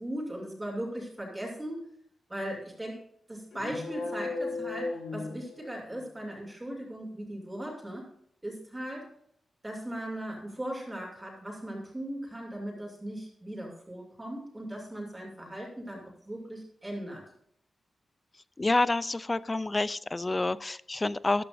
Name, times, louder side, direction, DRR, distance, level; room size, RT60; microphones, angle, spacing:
voice 1, 0.0-1.9 2.3-3.0 3.3-8.1 8.4-9.1 9.6-17.2, right 1 dB, 10° right, -2 dB, 2.8 m, -38 dB
sound 1, 3.5-6.1, left 3 dB, 70° left, 4.7 m, -36 dB
voice 2, 18.6-21.4, left 2 dB, 20° left, 17 dB, 0.4 m, -28 dB
13.5 x 12.0 x 2.6 m, 0.68 s
wide cardioid pair, 165°, 0 cm